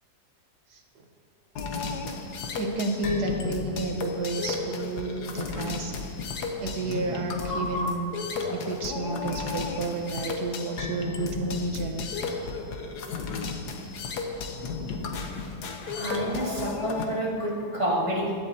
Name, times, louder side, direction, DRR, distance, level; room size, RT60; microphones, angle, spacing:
voice 1, 0.7-1.0 2.5-5.9 6.6-8.1 8.5-12.1, right 3 dB, 80° right, 3 dB, 1.7 m, -31 dB
sound 1, 1.6-17.0, left 4 dB, 80° left, 1.5 m, -33 dB
voice 2, 15.8-18.4, right 1 dB, 20° right, -5 dB, 2.2 m, -28 dB
16.0 x 11.5 x 2.8 m, 2.4 s
omnidirectional pair, 1.7 m